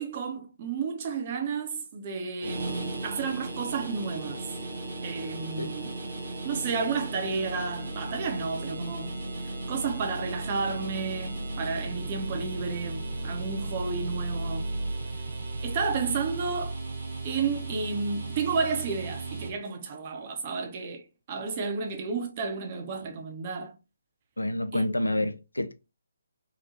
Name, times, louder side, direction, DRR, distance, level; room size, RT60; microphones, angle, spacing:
voice 1, 0.0-4.4 5.0-6.0 6.4-9.2 9.4-14.7 15.6-16.8 17.2-23.8 24.7-25.2, right 5 dB, 30° right, 0.6 m, -32 dB
sound 1, 2.4-19.5, right 2 dB, 50° right, 0.9 m, -35 dB
voice 2, 24.4-25.7, left 1 dB, 75° left, 0.4 m, -28 dB
2.9 x 2.1 x 2.6 m
figure-of-eight pair, 140°, 0 cm